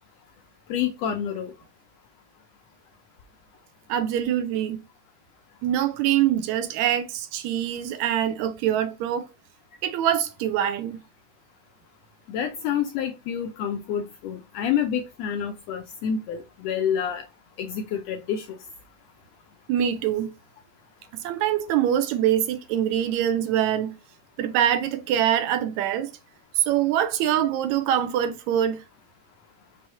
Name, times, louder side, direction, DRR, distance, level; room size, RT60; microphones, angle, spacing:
voice 1, 0.7-1.5 12.3-17.2 17.6-18.6, left 8 dB, 80° left, 1.5 m, -28 dB
voice 2, 3.9-4.8 5.6-9.3 9.8-11.0 19.7-20.3 21.2-23.9 24.4-26.1 26.6-28.8, right 10 dB, 75° right, 1.9 m, -24 dB
6.2 x 2.8 x 5.5 m
omnidirectional pair, 3.5 m